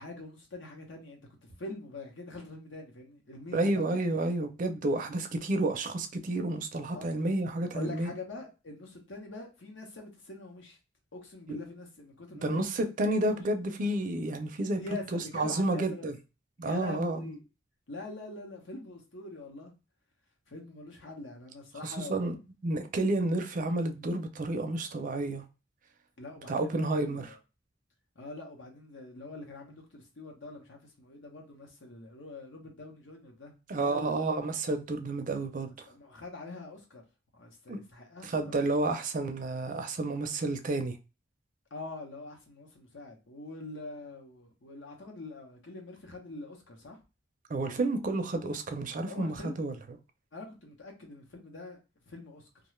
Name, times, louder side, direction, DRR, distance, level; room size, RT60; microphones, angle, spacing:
voice 1, 0.0-3.8 5.0-5.2 6.9-7.1 7.7-10.8 11.1-12.6 13.2-13.3 14.8-16.1 16.6-17.4 17.9-19.7 20.5-22.4 26.2-27.4 28.2-33.5 33.8-34.2 35.9-37.0 37.3-38.6 41.7-47.0 49.0-49.6 50.3-51.8 52.1-52.5, left 2 dB, 80° left, 0.9 m, -44 dB
voice 2, 3.5-8.1 12.4-14.8 15.1-16.1 16.6-17.3 21.8-22.3 22.6-25.4 26.5-27.3 33.7-35.7 37.7-37.8 38.2-41.0 47.5-49.7, right 2 dB, 45° right, 0.4 m, -30 dB
2.4 x 2.2 x 3.0 m
head